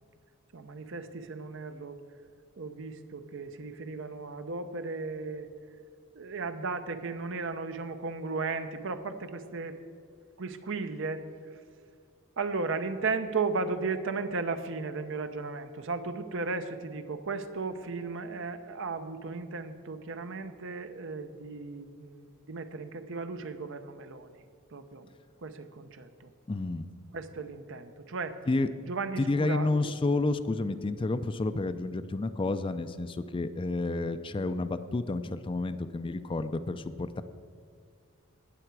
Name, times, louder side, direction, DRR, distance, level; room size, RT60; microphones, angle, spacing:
voice 1, 0.5-2.0 2.6-5.5 6.1-9.8 10.4-11.3 12.4-24.3 24.7-25.1 25.4-26.3 27.1-28.4 28.9-29.9, right 4 dB, 65° right, 9 dB, 0.8 m, -35 dB
voice 2, 26.5-26.9 28.5-28.7 29.2-37.2, left 2 dB, 25° left, 11 dB, 0.4 m, -30 dB
18.5 x 6.9 x 4.7 m, 2.1 s
head